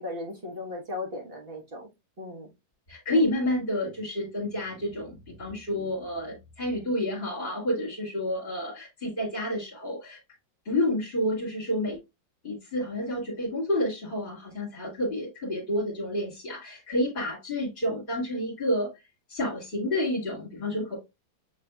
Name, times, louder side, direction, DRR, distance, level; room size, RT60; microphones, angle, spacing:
voice 1, 0.0-1.9 2.2-2.5 3.1-3.2, left 2 dB, 35° right, 0 dB, 1.3 m, -37 dB
voice 2, 2.9-10.2 10.6-12.0 12.4-18.9 19.3-21.0, left 1 dB, 35° left, -5 dB, 2.2 m, -29 dB
6.5 x 3.3 x 2.2 m, 0.22 s
omnidirectional pair, 2.0 m